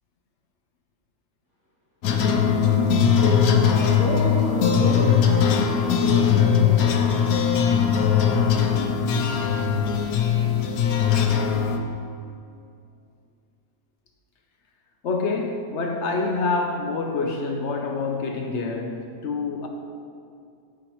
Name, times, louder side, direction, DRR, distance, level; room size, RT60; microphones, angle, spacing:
sound 1, 2.0-11.8, left 7 dB, 85° left, 1.1 m, -20 dB
voice 1, 3.1-7.0, equal, 60° right, 1.8 m, -29 dB
voice 2, 15.0-19.7, left 3 dB, 60° left, 0.8 m, -27 dB
14.0 x 5.0 x 3.0 m
omnidirectional pair, 1.5 m